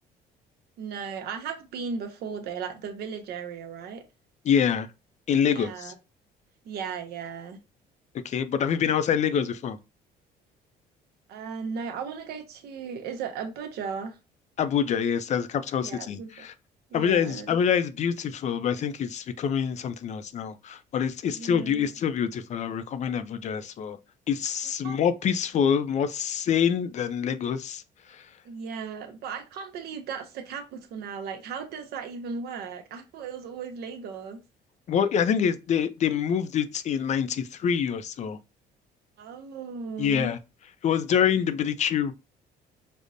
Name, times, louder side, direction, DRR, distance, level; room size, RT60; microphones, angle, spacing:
voice 1, 0.8-4.0 5.4-5.9 6.6-7.6 11.3-14.2 15.8-16.5 16.9-17.6 21.2-21.9 24.8-25.0 28.4-34.4 39.2-40.3, right 6 dB, 70° right, 0.8 m, -36 dB
voice 2, 4.5-4.9 5.3-5.9 8.2-9.8 14.6-16.5 16.9-24.0 24.3-27.8 28.1-28.2 34.9-38.4 40.0-40.4 40.8-42.1, left 8 dB, 45° left, 0.4 m, -26 dB
5.1 x 2.0 x 2.5 m
cardioid pair, 110°, 17 cm